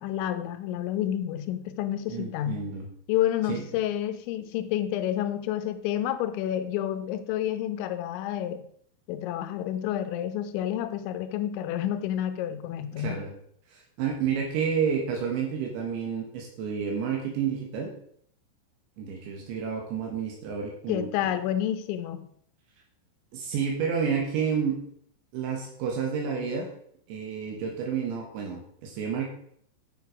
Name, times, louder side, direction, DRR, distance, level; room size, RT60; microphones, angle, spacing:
voice 1, 0.0-2.6 3.1-8.6 9.1-13.2 20.9-22.3, left 11 dB, 80° left, 10 dB, 3.1 m, -29 dB
voice 2, 2.1-2.9 3.5-3.6 13.0-13.3 13.7-17.9 19.0-21.4 23.3-24.8 25.3-26.7 27.1-29.3, right 6 dB, 75° right, 0 dB, 3.7 m, -30 dB
9.7 x 6.5 x 4.8 m, 0.65 s
omnidirectional pair, 5.4 m